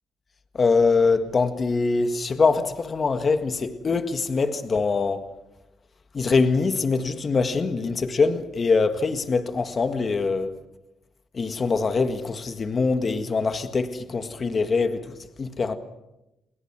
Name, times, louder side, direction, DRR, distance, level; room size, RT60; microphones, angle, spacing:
voice 1, 0.5-5.3 6.1-10.5 11.3-15.8, left 4 dB, 40° left, 1.8 m, -23 dB
29.5 x 21.0 x 6.1 m
cardioid pair, 90°, 0 cm